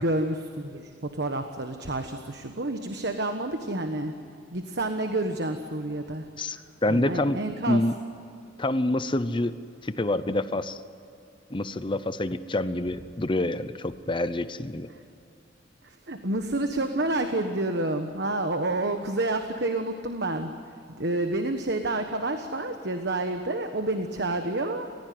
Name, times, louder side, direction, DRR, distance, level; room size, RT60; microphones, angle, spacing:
voice 1, 0.0-4.1 4.5-7.8 14.9-15.0 15.8-24.9, right 2 dB, 55° right, 6 dB, 1.3 m, -29 dB
voice 2, 6.4-7.4 7.7-7.9 8.6-9.5 9.8-10.8 11.5-14.9, left 1 dB, 25° left, 13 dB, 0.7 m, -27 dB
29.5 x 16.5 x 9.5 m, 2.7 s
head